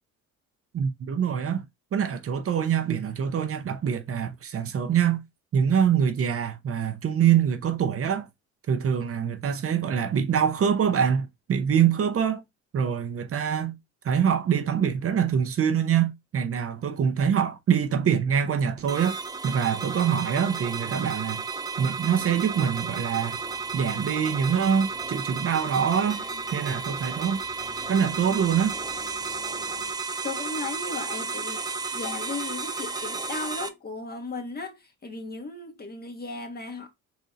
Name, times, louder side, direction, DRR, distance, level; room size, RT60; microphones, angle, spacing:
voice 1, 0.7-1.6 1.9-5.2 5.5-8.3 8.7-12.4 12.7-13.7 14.0-19.2 19.4-21.4 21.8-23.4 23.7-26.2 26.5-27.4 27.9-28.7, right 8 dB, 50° right, 0.7 m, -24 dB
sound 1, 18.9-33.7, right 4 dB, 15° right, 0.7 m, -33 dB
sound 2, 22.0-29.9, left 6 dB, 70° left, 1.2 m, -50 dB
voice 2, 30.2-31.6 31.9-36.9, left 3 dB, 30° left, 1.4 m, -36 dB
4.1 x 2.6 x 4.8 m
cardioid pair, 90°, 30 cm